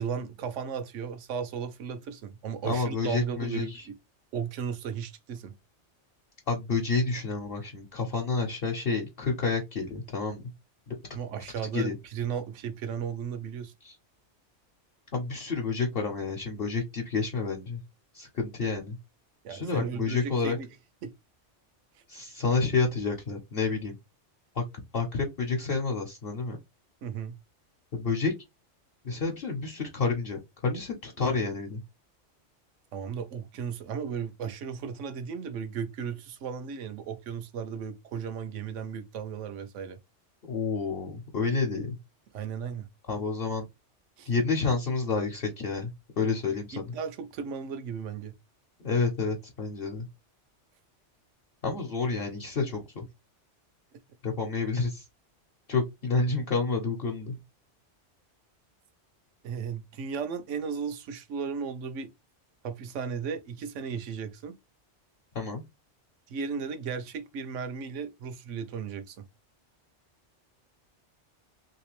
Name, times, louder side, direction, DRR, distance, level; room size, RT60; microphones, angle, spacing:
voice 1, 0.0-3.8 4.3-5.5 11.1-13.7 19.4-20.7 21.0-21.1 27.0-27.3 32.9-40.0 42.3-42.9 44.2-44.3 46.4-48.3 59.4-62.1 62.6-64.5 66.3-69.2, right 6 dB, 85° right, 1.0 m, -35 dB
voice 2, 2.6-3.9 6.5-10.4 10.9-11.0 11.7-12.0 13.8-13.9 15.1-17.8 18.1-19.0 19.5-20.6 22.1-23.9 24.6-24.7 24.9-26.6 27.9-28.3 29.0-31.8 40.5-42.0 43.1-43.7 44.3-46.9 48.8-50.1 51.6-53.0 54.2-55.0 55.7-57.4 65.3-65.6, left 4 dB, 55° left, 0.9 m, -29 dB
3.2 x 2.9 x 3.0 m
omnidirectional pair, 1.2 m